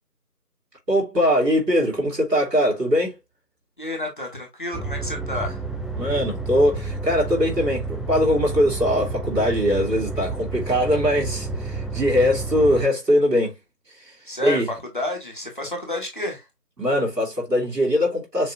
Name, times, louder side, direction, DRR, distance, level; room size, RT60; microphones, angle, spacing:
voice 1, 0.9-3.1 6.0-13.5 14.4-14.7 16.8-18.5, equal, 85° right, 3.1 m, -21 dB
voice 2, 3.8-5.6 14.2-14.6 14.9-16.5, left 2 dB, 30° left, 1.4 m, -30 dB
sound 1, 4.7-12.8, right 3 dB, ahead, 0.5 m, -30 dB
6.4 x 3.1 x 2.5 m
figure-of-eight pair, 170°, 48 cm